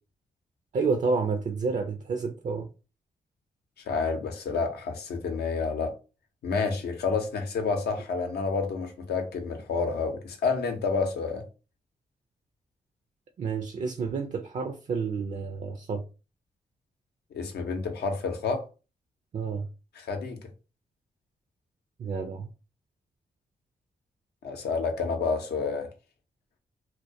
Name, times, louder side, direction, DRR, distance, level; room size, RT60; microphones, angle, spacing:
voice 1, 0.7-2.7 13.4-16.0 19.3-19.7 22.0-22.5, right 4 dB, 45° right, 0.4 m, -29 dB
voice 2, 3.9-5.9 6.4-11.4 17.3-18.7 19.9-20.4 24.4-25.9, left 4 dB, 80° left, 0.6 m, -29 dB
2.2 x 2.1 x 2.6 m
supercardioid pair, 50°, 16 cm